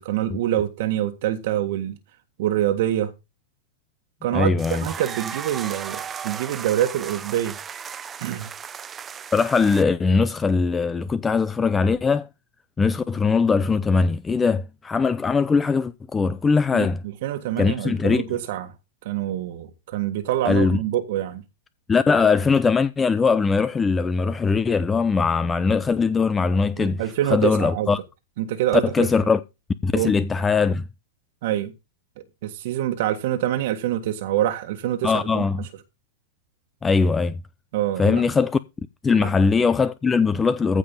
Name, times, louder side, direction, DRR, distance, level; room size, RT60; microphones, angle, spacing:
voice 1, 0.0-2.0 2.4-3.1 4.2-7.6 8.2-8.5 16.7-16.9 17.2-18.7 19.0-21.4 26.8-27.9 28.4-29.1 29.9-30.1 31.4-31.7 32.4-35.7 37.7-38.2 39.2-39.3, right 12 dB, 60° right, 1.5 m, -25 dB
voice 2, 4.3-4.9 9.3-12.3 12.8-17.0 17.6-18.2 20.4-20.8 21.9-27.0 27.3-28.0 28.9-29.4 29.8-30.8 35.0-35.6 36.8-37.4 38.0-38.6 39.0-40.8, left 4 dB, 15° left, 0.6 m, -21 dB
sound 1, 4.6-9.8, right 7 dB, 20° right, 0.8 m, -35 dB
15.0 x 5.3 x 5.5 m
hypercardioid pair, 135°, 0 cm